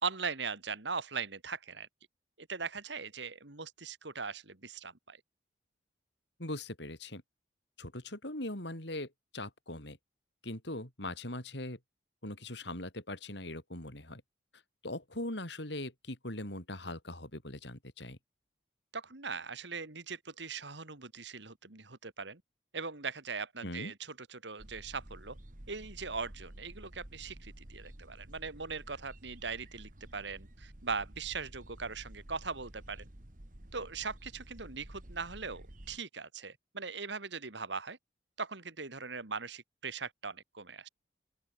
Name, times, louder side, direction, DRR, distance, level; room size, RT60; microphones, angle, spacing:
voice 1, 0.0-1.9 2.4-5.2 18.9-22.4 22.7-25.4 25.7-33.1 33.7-38.0 38.4-40.9, right 5 dB, 75° right, 2.3 m, -40 dB
voice 2, 6.4-7.2 7.8-10.0 10.4-11.8 12.2-14.2 14.8-18.2 23.6-23.9, left 1 dB, 70° left, 5.4 m, -40 dB
sound 1, 24.6-36.0, right 1 dB, 45° right, 1.9 m, -51 dB
open air
head